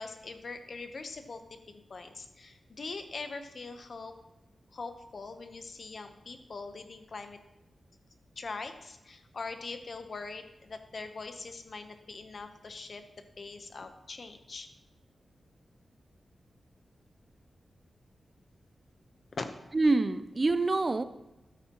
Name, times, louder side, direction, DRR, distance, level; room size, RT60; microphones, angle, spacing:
voice 1, 0.0-1.4 1.7-4.1 4.7-7.4 8.4-13.0 13.4-14.7 19.3-19.4, left 4 dB, 50° left, 7 dB, 0.9 m, -42 dB
voice 2, 19.7-21.0, right 3 dB, 30° right, 12 dB, 0.4 m, -26 dB
13.0 x 9.2 x 3.0 m, 0.95 s
wide cardioid pair, 125°, 0 cm